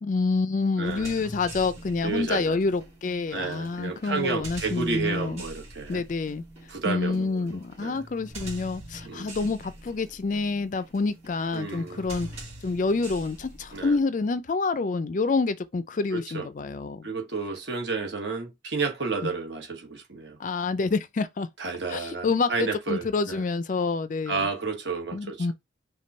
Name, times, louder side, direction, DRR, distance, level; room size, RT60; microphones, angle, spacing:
voice 1, 0.0-5.4 5.9-6.4 6.8-12.3 12.6-17.1 19.2-19.3 20.4-21.5 21.9-24.5 25.1-25.5, left 4 dB, 40° left, 0.4 m, -27 dB
sound 1, 0.8-14.0, right 1 dB, 35° right, 2.4 m, -44 dB
voice 2, 0.8-1.2 2.0-2.6 3.3-6.0 6.7-8.0 9.0-9.4 11.5-12.3 13.7-13.9 16.1-16.5 17.0-20.4 21.6-23.4 24.3-25.5, right 4 dB, 65° right, 1.3 m, -31 dB
5.2 x 2.3 x 4.1 m
head